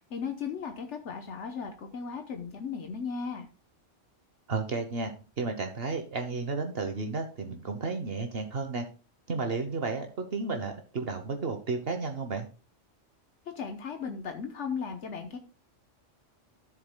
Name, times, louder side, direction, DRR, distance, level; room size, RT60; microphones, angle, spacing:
voice 1, 0.0-3.5 13.6-15.4, left 6 dB, 75° left, 5 dB, 1.2 m, -36 dB
voice 2, 4.5-8.9 9.3-12.5, right 4 dB, 55° right, 6 dB, 1.1 m, -32 dB
13.0 x 7.3 x 2.2 m, 0.34 s
omnidirectional pair, 1.2 m